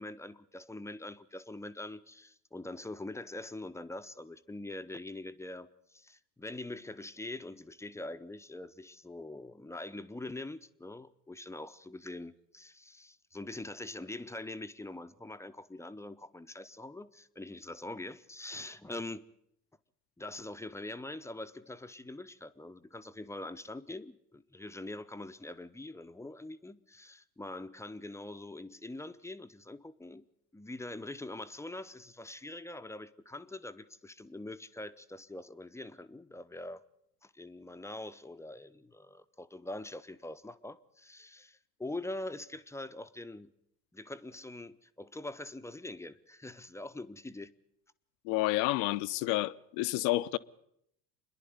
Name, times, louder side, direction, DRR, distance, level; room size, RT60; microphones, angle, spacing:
voice 1, 0.0-19.2 20.2-30.2 30.5-36.8 37.2-43.5 43.9-47.5, left 2 dB, 5° left, 0.7 m, -44 dB
voice 2, 48.2-50.4, left 18 dB, 55° left, 0.8 m, -30 dB
27.0 x 11.0 x 9.6 m
hypercardioid pair, 75°, 48 cm